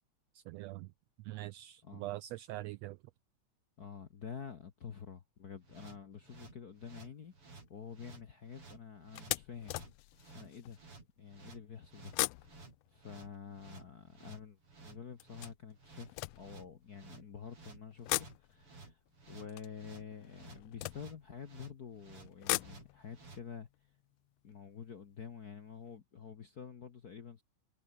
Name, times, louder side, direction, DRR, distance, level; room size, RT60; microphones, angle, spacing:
voice 1, 0.3-0.9 1.3-3.0, right 17 dB, 80° right, 1.5 m, -43 dB
voice 2, 3.8-7.3 7.7-9.7 10.3-10.8 11.2-12.4 12.9-19.0 19.3-23.7 24.4-27.4, left 7 dB, 50° left, 1.1 m, -48 dB
sound 1, 5.6-23.4, right 3 dB, 45° right, 7.1 m, -55 dB
sound 2, 6.8-7.1 7.7-7.9 8.3-8.4 9.1-10.8 12.0-14.3 15.2-17.2 17.9-21.7 22.2-25.2 25.5-25.6 25.9-26.0, left 19 dB, 85° left, 1.4 m, -41 dB
omnidirectional pair, 3.4 m